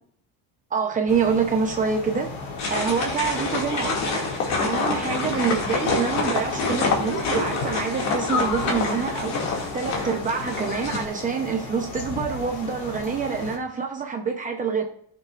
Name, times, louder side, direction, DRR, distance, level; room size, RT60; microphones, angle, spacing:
voice 1, 0.7-2.3 2.7-4.1 4.6-14.8, right 6 dB, 20° right, 3 dB, 0.7 m, -26 dB
sound 1, 1.1-13.6, left 3 dB, 90° left, 3.2 m, -36 dB
sound 2, 2.6-11.0, left 4 dB, 50° left, 2.3 m, -27 dB
17.0 x 6.8 x 2.5 m, 0.63 s
cardioid pair, 175°, 37 cm